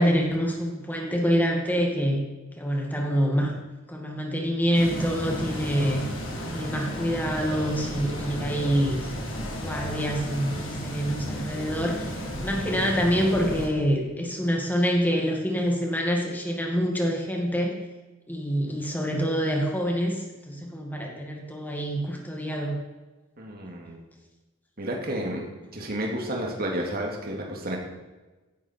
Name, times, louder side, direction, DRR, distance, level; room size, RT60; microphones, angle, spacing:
voice 1, 0.0-2.3 2.6-3.6 3.9-6.0 6.5-9.1 9.5-17.7 18.3-22.8, equal, 10° left, 0 dB, 2.1 m, -26 dB
sound 1, 4.7-13.7, equal, 70° left, 3.5 m, -33 dB
voice 2, 23.4-24.0 24.8-25.5 25.7-27.8, right 1 dB, 50° right, 0 dB, 2.7 m, -31 dB
16.5 x 11.0 x 4.6 m, 1.2 s
head